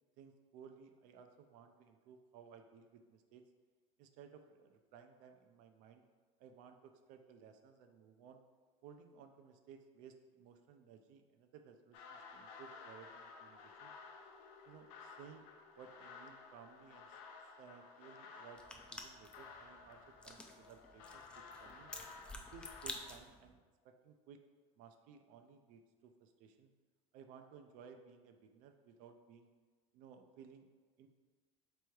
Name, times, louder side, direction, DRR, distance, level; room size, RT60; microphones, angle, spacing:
voice 1, 0.2-3.5 4.0-6.0 6.4-8.4 8.8-13.9 14.7-15.5 15.8-17.2 17.6-21.9 22.5-23.6 23.8-24.4 24.8-26.7 27.1-29.5 29.9-30.7 31.0-31.1, right 7 dB, 60° right, 7 dB, 0.5 m, -58 dB
sound 1, 11.9-23.1, left 4 dB, 70° left, 0.6 m, -55 dB
sound 2, 18.6-23.5, left 2 dB, 5° left, 0.3 m, -51 dB
3.4 x 3.0 x 4.6 m, 1.4 s
cardioid pair, 145°, 15 cm